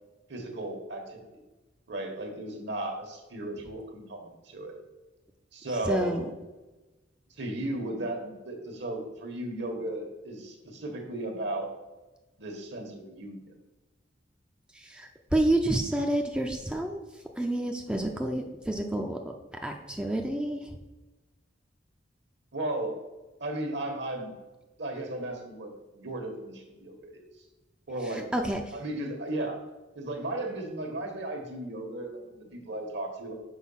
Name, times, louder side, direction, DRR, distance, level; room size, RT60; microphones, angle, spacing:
voice 1, 0.3-1.4 1.9-4.8 5.5-6.2 7.4-11.7 12.4-13.4 22.5-23.0 23.4-24.3 24.8-27.2 27.9-28.3 28.7-29.6 29.9-33.3, right 1 dB, 65° right, 4 dB, 1.4 m, -35 dB
voice 2, 5.9-6.2 14.8-17.0 17.4-19.2 19.6-20.6 28.3-28.6, right 1 dB, 5° right, 2 dB, 0.5 m, -28 dB
6.2 x 4.6 x 5.6 m, 1.1 s
head